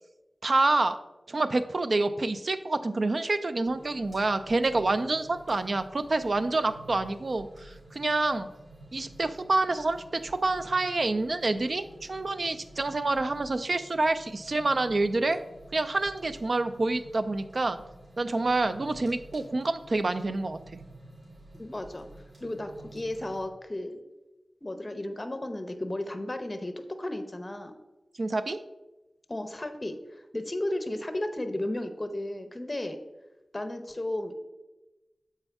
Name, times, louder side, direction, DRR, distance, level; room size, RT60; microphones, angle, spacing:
voice 1, 0.4-1.0 1.3-8.5 8.9-15.4 15.7-17.8 18.2-20.6 28.2-28.6, right 2 dB, 60° right, 10 dB, 0.4 m, -27 dB
sound 1, 3.6-23.5, right 1 dB, 85° right, 2.3 m, -51 dB
voice 2, 21.6-22.1 22.4-24.0 24.6-27.7 29.3-33.0 33.5-34.3, left 1 dB, 30° left, 8 dB, 0.7 m, -34 dB
7.0 x 4.4 x 3.4 m, 1.0 s
wide cardioid pair, 65°, 0 cm